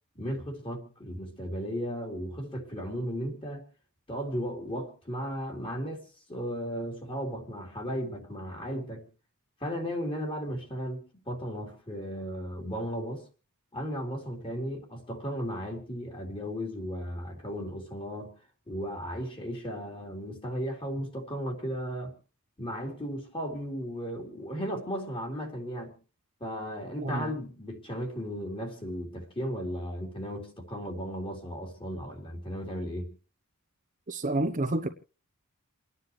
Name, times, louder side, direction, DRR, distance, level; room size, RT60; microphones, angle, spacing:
voice 1, 0.2-3.6 4.1-9.0 9.6-13.2 13.7-18.3 18.7-22.1 22.6-25.9 26.4-33.1, equal, 25° left, 3.8 m, -35 dB
voice 2, 27.0-27.3 34.1-34.9, right 2 dB, 35° right, 0.9 m, -29 dB
29.5 x 10.0 x 3.2 m
head